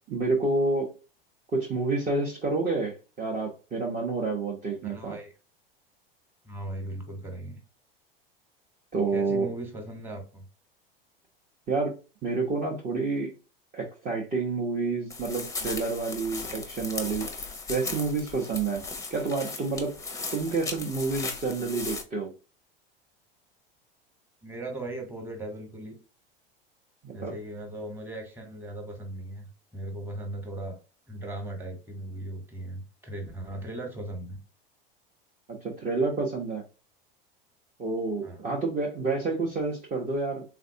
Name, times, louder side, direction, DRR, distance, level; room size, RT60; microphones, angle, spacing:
voice 1, 0.1-0.9 1.5-5.2 8.9-9.5 11.7-12.0 12.2-13.3 13.7-17.3 17.7-18.8 19.1-19.9 20.3-22.3 27.0-27.3 35.5-36.6 37.8-40.4, right 3 dB, 25° right, -2 dB, 0.8 m, -29 dB
voice 2, 4.8-5.3 6.4-7.6 9.1-10.4 24.4-26.0 27.1-30.8 31.1-34.4 38.2-38.5, right 1 dB, 10° right, 2 dB, 1.1 m, -38 dB
sound 1, 15.1-22.0, left 4 dB, 10° left, 0.6 m, -37 dB
3.4 x 2.5 x 2.7 m, 0.33 s
hypercardioid pair, 90°, 29 cm